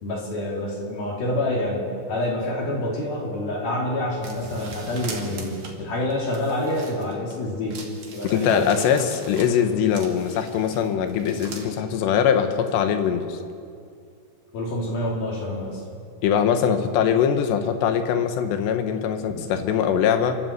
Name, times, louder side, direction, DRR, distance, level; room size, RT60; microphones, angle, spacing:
voice 1, 0.0-7.8 8.1-8.7 14.5-15.8, left 1 dB, 60° left, -1 dB, 4.6 m, -27 dB
sound 1, 4.2-7.3 7.7-11.7, right 4 dB, 40° right, 2.7 m, -41 dB
voice 2, 8.3-13.4 16.2-20.4, left 8 dB, 80° left, 8 dB, 3.3 m, -22 dB
28.5 x 12.0 x 8.0 m, 2.4 s
omnidirectional pair, 4.9 m